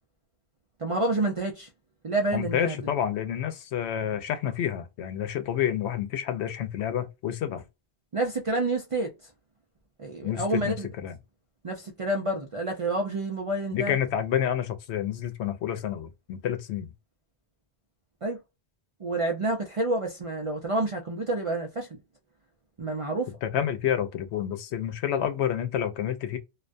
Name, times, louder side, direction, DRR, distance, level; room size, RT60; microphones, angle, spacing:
voice 1, 0.8-1.7 2.0-2.8 8.1-9.1 10.0-10.9 11.6-14.0 18.2-18.4 19.0-22.0 22.8-23.3, right 2 dB, 50° right, 0.4 m, -28 dB
voice 2, 2.3-7.6 10.2-10.7 11.0-11.1 13.7-16.9 23.4-26.4, left 9 dB, 90° left, 0.9 m, -29 dB
2.4 x 2.2 x 2.4 m
omnidirectional pair, 1.1 m